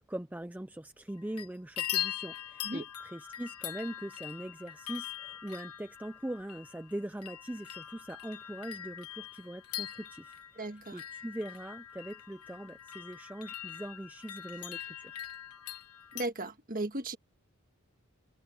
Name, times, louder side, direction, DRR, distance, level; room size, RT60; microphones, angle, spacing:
voice 1, 0.0-15.2, right 1 dB, 5° right, 0.4 m, -42 dB
sound 1, 1.1-1.5 1.8-16.3, left 12 dB, 90° left, 1.2 m, -42 dB
voice 2, 10.5-11.0 16.1-17.2, right 2 dB, 40° right, 1.7 m, -36 dB
head